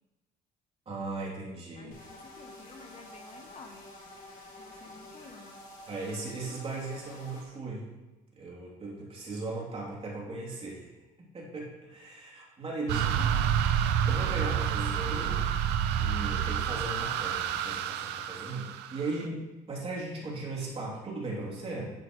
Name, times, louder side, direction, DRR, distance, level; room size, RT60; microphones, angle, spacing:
voice 1, 0.9-1.9 5.9-7.9 8.4-10.9 11.2-13.1 14.1-15.4 16.0-19.4 19.7-21.9, right 2 dB, 35° right, -4 dB, 3.1 m, -37 dB
voice 2, 1.8-3.8 4.6-5.5 12.9-13.7, left 4 dB, 40° left, 4 dB, 1.0 m, -49 dB
sound 1, 1.9-7.4, left 1 dB, 55° left, 3.1 m, -49 dB
sound 2, 12.9-19.3, right 9 dB, 85° right, 0.6 m, -29 dB
10.5 x 7.7 x 3.2 m, 1.1 s
cardioid pair, 110°, 17 cm